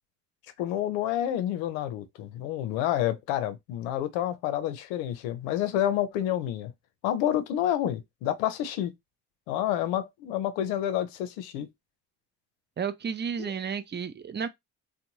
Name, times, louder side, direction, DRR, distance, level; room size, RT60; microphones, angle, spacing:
voice 1, 0.6-6.7 7.0-8.9 9.5-11.7 13.4-13.5, left 11 dB, 80° left, 0.6 m, -29 dB
voice 2, 12.8-14.5, right 7 dB, 25° right, 0.4 m, -32 dB
2.6 x 2.1 x 2.9 m
hypercardioid pair, 55°, 46 cm